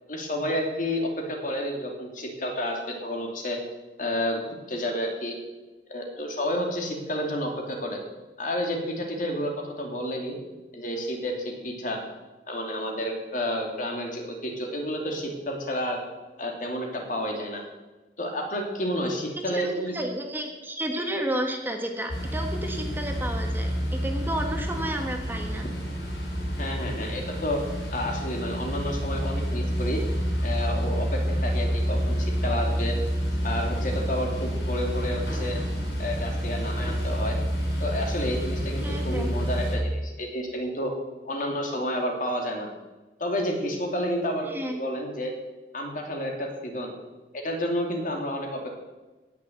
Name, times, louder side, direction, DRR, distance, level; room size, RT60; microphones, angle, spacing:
voice 1, 0.1-3.6 4.0-4.4 4.7-5.3 5.9-8.0 8.4-10.4 10.7-12.0 12.5-16.0 16.4-17.6 18.2-19.9 26.6-27.6 27.9-30.0 30.4-33.0 33.4-35.6 36.0-37.4 37.8-40.9 41.2-42.7 43.2-45.3 45.7-46.9 47.3-48.7, equal, 45° left, 2 dB, 2.8 m, -30 dB
voice 2, 19.5-23.7 24.0-25.6 38.8-39.3 44.5-44.8, right 1 dB, 10° right, 3 dB, 1.4 m, -31 dB
sound 1, 22.1-39.8, equal, 70° left, 6.3 m, -28 dB
17.5 x 6.9 x 8.0 m, 1.2 s
head